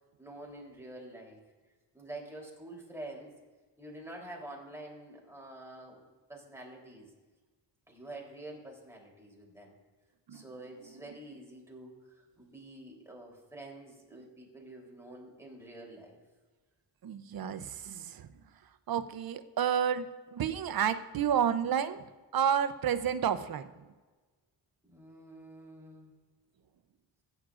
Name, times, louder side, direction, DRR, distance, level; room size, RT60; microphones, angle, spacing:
voice 1, 0.2-1.4 1.9-3.3 3.8-6.0 6.3-7.1 7.9-9.7 10.3-16.2 24.8-26.1, right 1 dB, 5° right, -2 dB, 3.5 m, -47 dB
voice 2, 17.0-18.3 18.9-22.1 22.3-23.7, right 8 dB, 60° right, 11 dB, 0.7 m, -30 dB
16.0 x 9.9 x 2.5 m, 1.3 s
cardioid pair, 80°, 41 cm